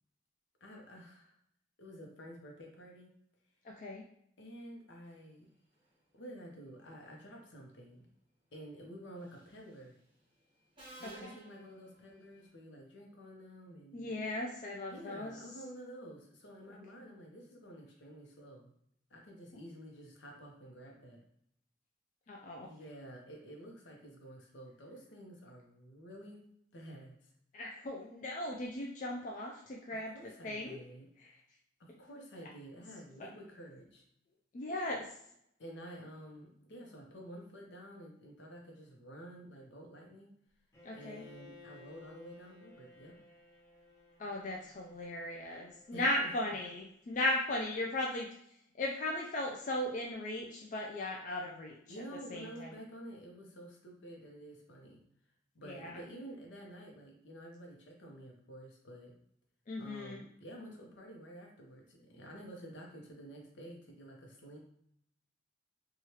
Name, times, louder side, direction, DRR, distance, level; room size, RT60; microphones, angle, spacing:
voice 1, 0.6-1.4 1.8-3.1 4.4-5.5 6.1-8.1 8.5-10.0 11.0-14.2 14.9-18.7 19.1-21.2 22.6-26.4 26.7-27.3 30.1-31.1 31.8-34.0 35.6-40.3 40.9-43.2 45.9-46.3 51.9-55.0 55.5-59.1 59.8-64.6, equal, 75° left, 0 dB, 0.8 m, -50 dB
voice 2, 3.6-4.0 11.0-11.4 13.9-15.4 22.3-22.7 27.5-30.1 30.4-30.8 31.2-31.3 34.5-35.1 40.8-41.2 44.2-48.3 48.8-51.8 52.3-52.7 55.6-56.0 59.7-60.2, left 1 dB, 40° left, -1 dB, 0.3 m, -37 dB
Subway metro underground, 9.3-9.6 10.8-12.5, right 2 dB, 25° right, 1.0 m, -55 dB
Bowed string instrument, 40.7-46.7, left 3 dB, 15° left, 1.0 m, -59 dB
3.1 x 2.3 x 2.8 m, 0.71 s
head